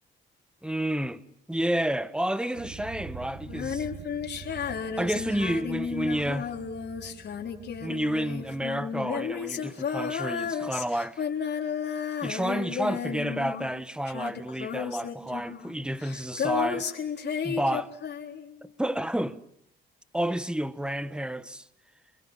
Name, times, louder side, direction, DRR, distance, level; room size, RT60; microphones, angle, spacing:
voice 1, 0.6-1.2 1.5-3.9 5.0-6.5 7.8-11.2 12.2-16.9 17.4-17.9 18.8-19.4 20.1-21.6, right 1 dB, 5° right, 1.5 m, -30 dB
sound 1, 2.5-9.2, right 6 dB, 70° right, 4.7 m, -45 dB
Female singing, 3.5-13.8 14.1-18.5, left 7 dB, 60° left, 3.8 m, -33 dB
29.0 x 21.0 x 7.5 m
cardioid pair, 90°, 20 cm